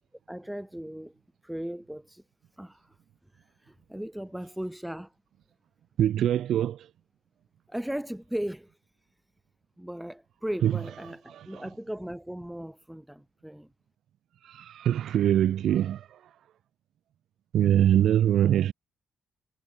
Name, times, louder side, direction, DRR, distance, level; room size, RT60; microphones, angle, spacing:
voice 1, 0.3-2.2 2.6-3.0 3.3-5.1 7.7-8.7 9.8-13.7, equal, 5° right, 0.5 m, -37 dB
voice 2, 6.0-6.9 10.6-10.7 11.3-11.6 14.4-16.2 17.5-18.7, right 11 dB, 70° right, 0.6 m, -23 dB
cardioid pair, 90°, 0 cm